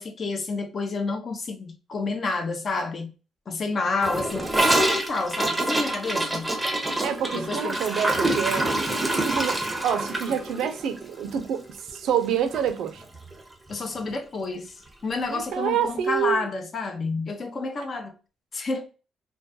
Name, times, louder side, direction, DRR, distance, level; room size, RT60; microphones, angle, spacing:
voice 1, 0.0-3.1 3.5-6.5 7.3-7.8 8.2-8.4 13.7-14.7 15.0-18.1 18.5-18.9, left 3 dB, 45° left, 0.5 m, -29 dB
Gurgling / Toilet flush, 4.0-12.3 12.5-12.7 13.0-13.4 13.7-13.8 14.1-14.2 15.1-15.2, right 1 dB, 10° right, 0.6 m, -26 dB
voice 2, 7.0-8.8 9.1-13.0 15.3-16.5, right 8 dB, 80° right, 0.4 m, -27 dB
2.3 x 2.2 x 2.5 m
cardioid pair, 90°, 0 cm